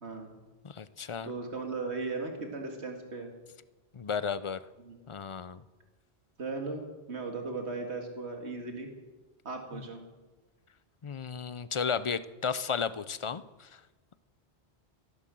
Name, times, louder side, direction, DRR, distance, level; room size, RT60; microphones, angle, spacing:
voice 1, 0.0-0.3 1.2-3.3 4.8-5.0 6.4-6.8 7.1-8.9 9.4-10.0, right 3 dB, 85° right, 3 dB, 2.3 m, -37 dB
voice 2, 0.6-1.3 3.9-4.6 5.1-5.6 9.7-9.8 11.0-13.7, left 6 dB, 40° left, 15 dB, 0.5 m, -33 dB
15.0 x 11.0 x 7.6 m, 1.2 s
omnidirectional pair, 1.1 m